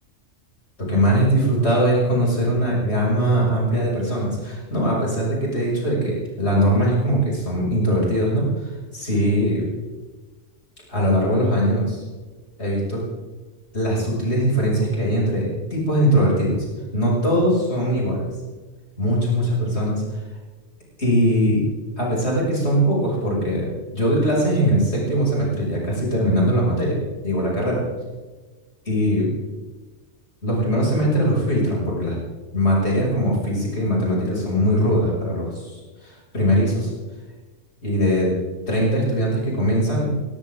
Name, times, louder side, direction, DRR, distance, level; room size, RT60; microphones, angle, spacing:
voice 1, 0.8-9.6 10.9-12.0 12.6-13.0 13.7-16.6 16.9-18.3 19.0-20.0 21.0-21.6 22.0-27.8 28.8-29.3 30.4-32.2 32.5-36.9 37.8-38.3 38.7-40.1, equal, 55° left, -4 dB, 6.6 m, -21 dB
19.5 x 18.5 x 3.8 m, 1.3 s
omnidirectional pair, 1.4 m